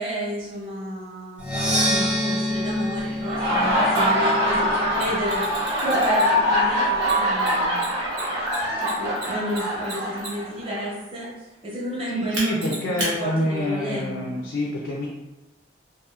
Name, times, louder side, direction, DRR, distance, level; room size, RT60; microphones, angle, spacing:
voice 1, 0.0-5.4 5.8-7.9 8.8-11.3 11.6-14.2, equal, 30° right, -7 dB, 0.8 m, -31 dB
Percussion, 1.4-5.2, equal, 5° right, 0.4 m, -27 dB
Laughter, 3.1-10.7, equal, 60° right, 0.8 m, -23 dB
Mechanisms, 3.9-4.0 4.9-6.5 7.0-10.6 12.3-13.1, right 2 dB, 90° right, 1.0 m, -33 dB
voice 2, 12.1-15.1, equal, 75° left, -3 dB, 0.4 m, -26 dB
2.8 x 2.3 x 2.3 m, 1.1 s
head